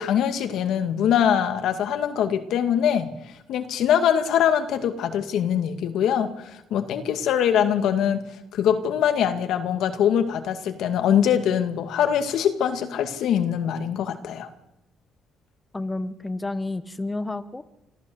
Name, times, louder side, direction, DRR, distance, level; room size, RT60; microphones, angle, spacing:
voice 1, 0.0-3.1 3.5-8.2 8.5-14.5, left 9 dB, 80° left, 7 dB, 2.2 m, -23 dB
voice 2, 15.7-17.6, left 2 dB, 20° left, 11 dB, 1.3 m, -30 dB
26.0 x 14.5 x 8.0 m, 0.90 s
cardioid pair, 90°, 0 cm